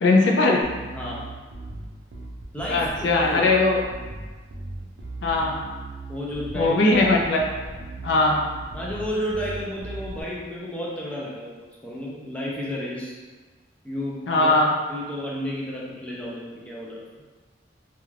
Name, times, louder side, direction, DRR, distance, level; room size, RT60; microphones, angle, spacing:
voice 1, 0.0-0.6 2.7-3.8 5.2-5.5 6.5-7.5 8.0-8.4 14.3-14.7, left 2 dB, 70° left, 0 dB, 0.4 m, -19 dB
Bass guitar, 0.6-10.2, right 2 dB, 65° right, 0.5 m, -38 dB
voice 2, 2.5-3.5 6.1-6.8 8.7-13.2 13.8-14.5 14.9-17.0, equal, 5° left, -6 dB, 0.4 m, -32 dB
2.4 x 2.2 x 3.2 m, 1.3 s
head